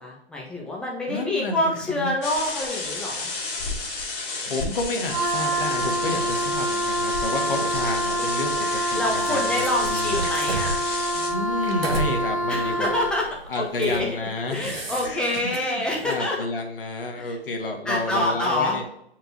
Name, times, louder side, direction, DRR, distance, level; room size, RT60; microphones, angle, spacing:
voice 1, 0.0-3.3 8.9-10.8 12.5-13.3 13.6-14.1 14.5-16.4 17.2-17.3 17.9-18.8, left 1 dB, 5° left, -3 dB, 0.5 m, -26 dB
voice 2, 1.1-2.2 4.4-8.5 8.9-10.2 11.1-13.0 13.5-18.8, left 2 dB, 55° left, 3 dB, 1.5 m, -30 dB
sound 1, 2.2-11.3, left 3 dB, 25° left, 1.6 m, -32 dB
Wind instrument woodwind instrument, 5.1-13.2, right 1 dB, 40° right, 1.8 m, -26 dB
sound 2, 5.5-6.5 7.1-8.6 9.3-12.1 12.6-12.8 13.4-14.1 14.4-15.6, right 3 dB, 65° right, 1.4 m, -33 dB
7.6 x 4.6 x 2.7 m, 0.80 s
figure-of-eight pair, 125°, 32 cm